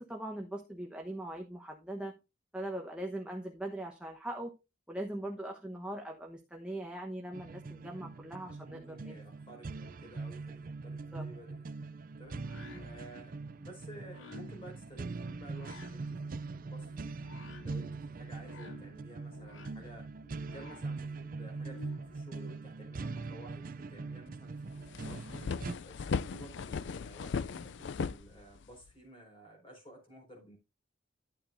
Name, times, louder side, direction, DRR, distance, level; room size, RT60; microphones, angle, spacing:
voice 1, 0.0-2.1 2.5-4.5 4.9-9.2 11.1-11.2 12.9-13.0, right 1 dB, 5° right, 1.1 m, -41 dB
sound 1, 7.3-25.7, right 3 dB, 45° right, 0.5 m, -42 dB
voice 2, 8.4-11.7 12.2-17.2 17.6-20.1 20.5-25.3 25.8-30.6, right 1 dB, 30° left, 4.9 m, -53 dB
sound 2, 12.2-22.2, left 4 dB, 90° left, 1.0 m, -55 dB
sound 3, 24.3-24.4 24.7-28.9, left 5 dB, 65° left, 0.4 m, -37 dB
12.0 x 8.5 x 2.7 m
head